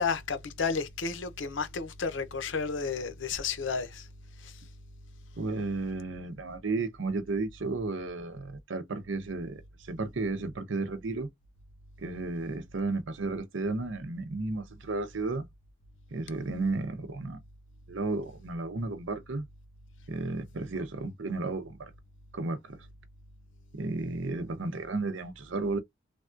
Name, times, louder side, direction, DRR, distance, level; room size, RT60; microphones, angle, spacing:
voice 1, 0.0-4.1 4.4-4.6, left 5 dB, 75° left, 0.7 m, -32 dB
voice 2, 5.4-11.3 12.0-15.5 16.1-17.4 17.9-19.4 20.1-21.9 22.3-22.8 23.7-25.8, right 3 dB, 75° right, 0.6 m, -33 dB
3.4 x 2.3 x 2.5 m
head